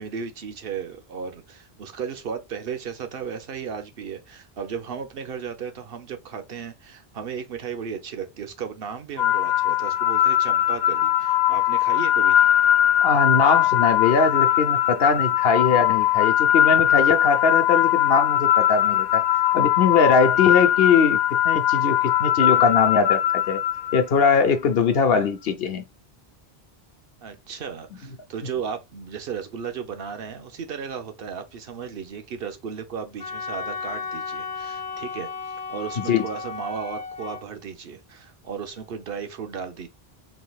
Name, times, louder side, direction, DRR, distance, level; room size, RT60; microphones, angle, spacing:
voice 1, 0.0-12.7 27.2-39.9, right 6 dB, 65° right, 0.9 m, -35 dB
sound 1, 9.2-24.3, left 12 dB, 50° left, 0.8 m, -20 dB
voice 2, 13.0-19.2 19.5-23.6 23.9-25.8 36.0-36.2, left 5 dB, 70° left, 1.0 m, -21 dB
Wind instrument woodwind instrument, 33.2-37.4, left 5 dB, 90° left, 1.3 m, -34 dB
4.0 x 3.7 x 2.3 m
omnidirectional pair, 1.0 m